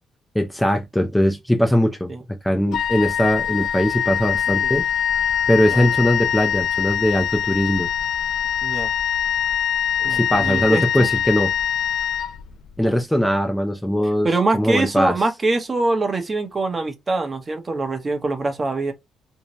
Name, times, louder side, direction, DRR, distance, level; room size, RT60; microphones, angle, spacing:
voice 1, 0.3-4.9 5.5-7.9 10.0-11.5 12.8-14.3 14.5-15.1, equal, 5° left, 0.5 m, -20 dB
Wind instrument woodwind instrument, 2.7-12.8, left 9 dB, 75° left, 0.3 m, -23 dB
voice 2, 8.6-8.9 10.0-11.1 12.8-13.0 14.2-18.9, right 3 dB, 30° right, 0.8 m, -24 dB
2.7 x 2.1 x 2.9 m
cardioid pair, 90°, 0 cm